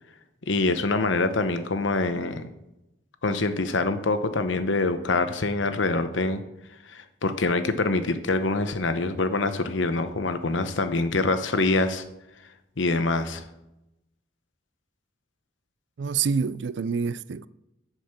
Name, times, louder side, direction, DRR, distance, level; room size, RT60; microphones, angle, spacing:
voice 1, 0.5-2.5 3.2-6.4 6.9-12.0 12.8-13.4, left 3 dB, 75° left, 0.9 m, -25 dB
voice 2, 16.0-17.5, right 6 dB, 65° right, 0.4 m, -27 dB
8.0 x 6.5 x 7.3 m
head